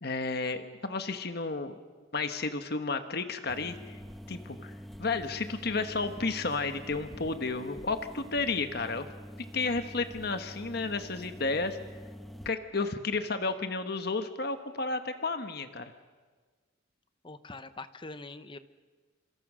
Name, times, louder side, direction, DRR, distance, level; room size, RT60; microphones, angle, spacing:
voice 1, 0.0-1.8 2.1-3.8 4.3-4.7 5.0-9.1 9.5-11.8 12.4-15.8, left 3 dB, 55° left, 8 dB, 1.3 m, -32 dB
sound 1, 3.5-12.5, equal, ahead, 1.0 m, -46 dB
voice 2, 17.2-18.6, left 3 dB, 25° left, 12 dB, 0.9 m, -43 dB
28.0 x 27.0 x 6.3 m, 1.5 s
head